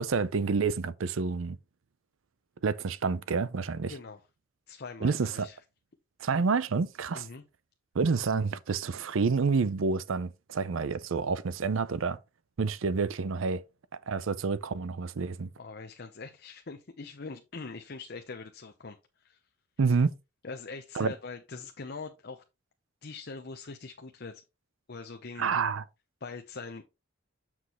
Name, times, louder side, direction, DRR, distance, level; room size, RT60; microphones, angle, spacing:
voice 1, 0.0-1.6 2.6-3.9 5.0-5.5 6.2-7.3 7.9-12.2 12.6-13.6 14.1-15.5 19.8-20.1 20.9-21.1 25.4-25.8, right 4 dB, 75° right, 0.5 m, -28 dB
voice 2, 3.9-4.2 4.7-5.6 7.1-7.4 15.6-19.4 20.4-22.4 23.0-24.4 24.9-25.5 26.2-26.8, left 4 dB, 50° left, 0.7 m, -42 dB
7.4 x 6.2 x 3.0 m
head